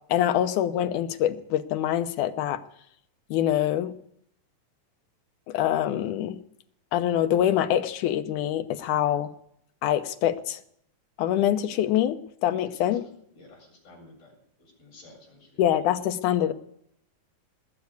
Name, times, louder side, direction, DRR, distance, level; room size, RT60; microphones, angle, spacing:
voice 1, 0.1-2.6 3.3-4.0 5.5-6.4 6.9-9.3 9.8-10.6 11.2-13.0 15.6-16.5, left 11 dB, 80° left, 9 dB, 2.4 m, -25 dB
voice 2, 12.6-13.0 13.3-14.3 14.6-15.6, left 2 dB, 50° left, -8 dB, 7.9 m, -52 dB
19.5 x 8.4 x 8.1 m, 0.71 s
omnidirectional pair, 3.5 m